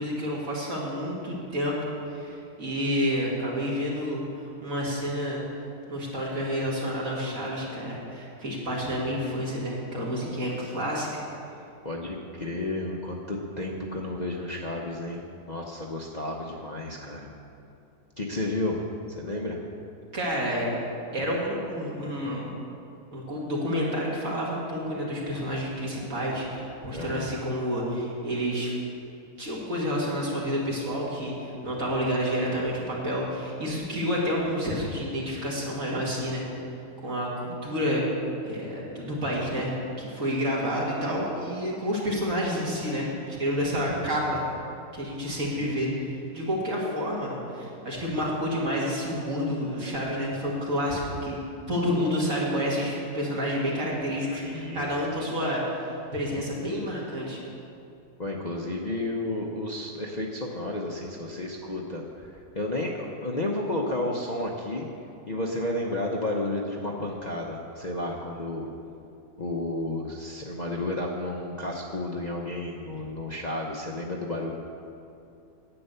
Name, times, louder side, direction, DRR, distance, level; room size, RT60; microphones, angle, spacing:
voice 1, 0.0-1.8 2.1-4.2 4.6-5.4 5.9-11.2 20.1-20.7 21.1-22.5 23.1-28.7 29.4-36.4 37.0-38.0 38.4-44.4 44.9-51.4 51.7-57.4, equal, 60° right, -5 dB, 2.7 m, -29 dB
voice 2, 11.8-15.2 15.5-17.3 18.2-19.6 26.9-27.3 43.7-44.0 54.4-54.9 55.2-55.4 58.2-64.9 65.3-68.7 69.4-74.5, left 2 dB, 35° left, -3 dB, 0.7 m, -32 dB
10.0 x 8.9 x 6.7 m, 2.6 s
omnidirectional pair, 1.7 m